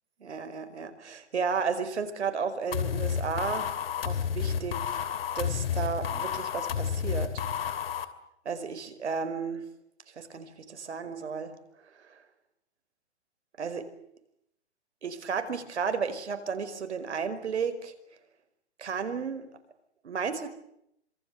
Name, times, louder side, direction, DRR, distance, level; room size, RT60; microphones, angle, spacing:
voice 1, 0.2-3.7 4.0-5.0 5.3-7.4 8.4-9.6 10.1-11.5 11.9-12.2 13.6-13.8 15.0-17.9 18.8-19.5 20.0-20.5, right 5 dB, 80° right, 10 dB, 5.2 m, -33 dB
sound 1, 2.7-8.1, left 8 dB, 60° left, 2.9 m, -31 dB
26.5 x 24.0 x 8.3 m, 0.77 s
hypercardioid pair, 160°, 33 cm